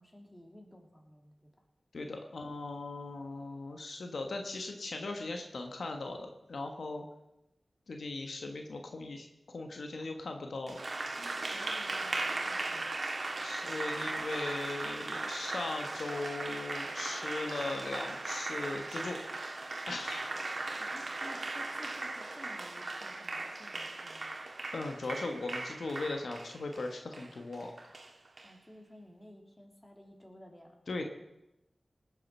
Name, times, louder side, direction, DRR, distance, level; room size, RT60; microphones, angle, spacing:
voice 1, 0.0-1.5 10.0-10.1 11.2-13.0 20.8-24.4 28.4-30.8, equal, 20° left, 2 dB, 3.2 m, -54 dB
voice 2, 1.9-7.0 7.9-10.8 13.4-19.2 19.9-20.3 24.7-28.1 30.9-31.0, left 2 dB, 85° left, 4 dB, 1.4 m, -39 dB
Applause, 10.7-28.5, right 2 dB, 60° right, 1.8 m, -38 dB
19.5 x 8.9 x 5.6 m, 0.92 s
cardioid pair, 45°, 0 cm